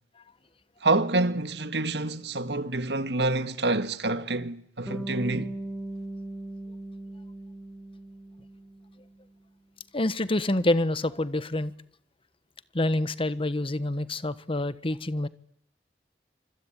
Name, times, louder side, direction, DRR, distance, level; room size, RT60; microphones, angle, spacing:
voice 1, 0.8-5.5, right 2 dB, 70° right, 1.8 m, -27 dB
Bass guitar, 4.9-9.1, right 1 dB, ahead, 2.2 m, -38 dB
voice 2, 9.9-11.7 12.7-15.3, left 1 dB, 30° left, 1.3 m, -27 dB
26.5 x 25.0 x 9.0 m
head